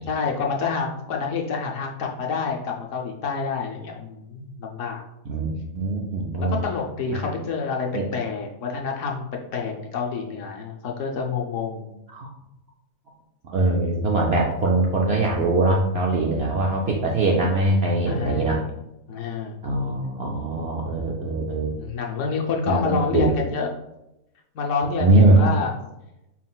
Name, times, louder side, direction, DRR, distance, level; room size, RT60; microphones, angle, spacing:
voice 1, 0.1-5.0 6.0-9.2 9.5-12.0 13.6-14.0 18.1-18.7 19.1-19.6 21.8-23.7 24.5-25.7, left 5 dB, 70° left, 1 dB, 0.8 m, -28 dB
voice 2, 5.3-6.6 7.1-7.3 7.9-8.1 12.1-12.3 13.4-18.6 19.6-21.7 22.7-23.3 25.0-25.4, right 2 dB, 65° right, -2 dB, 0.6 m, -22 dB
4.5 x 3.7 x 2.3 m, 0.90 s
omnidirectional pair, 1.6 m